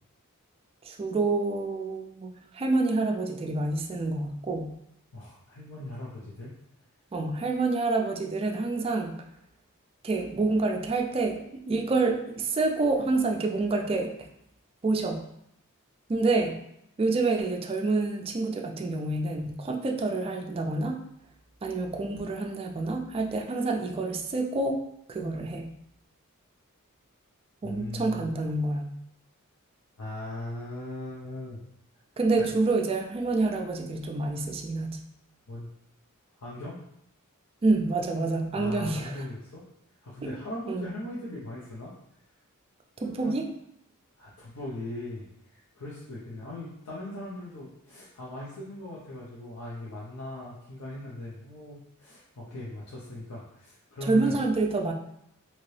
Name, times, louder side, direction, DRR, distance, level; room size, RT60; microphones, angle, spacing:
voice 1, 0.9-4.7 7.1-9.1 10.0-14.1 14.8-15.2 16.1-16.5 17.0-21.0 21.6-24.8 25.1-25.7 27.6-28.8 32.2-35.0 37.6-39.2 40.7-40.9 43.0-43.5 54.1-54.9, right 3 dB, 25° right, 3 dB, 0.3 m, -27 dB
voice 2, 5.1-6.5 27.6-28.3 30.0-31.6 32.4-32.5 35.5-35.7 36.3-36.8 38.5-39.6 40.0-41.9 43.0-43.4 44.2-54.4, left 1 dB, 80° left, -7 dB, 0.7 m, -39 dB
2.9 x 2.7 x 3.1 m, 0.77 s
head